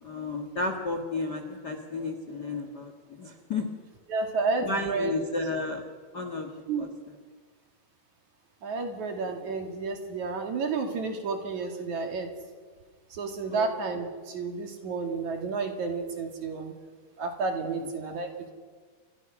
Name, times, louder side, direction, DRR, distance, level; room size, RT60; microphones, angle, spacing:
voice 1, 0.0-3.7 4.6-5.8 6.1-6.5 6.8-6.9 13.5-13.7, left 3 dB, 75° left, 5 dB, 0.9 m, -32 dB
voice 2, 4.1-5.1 6.7-6.9 8.6-12.3 13.1-16.7 17.2-18.5, right 4 dB, 45° right, 4 dB, 3.2 m, -31 dB
29.0 x 24.0 x 6.2 m, 1.5 s
omnidirectional pair, 5.1 m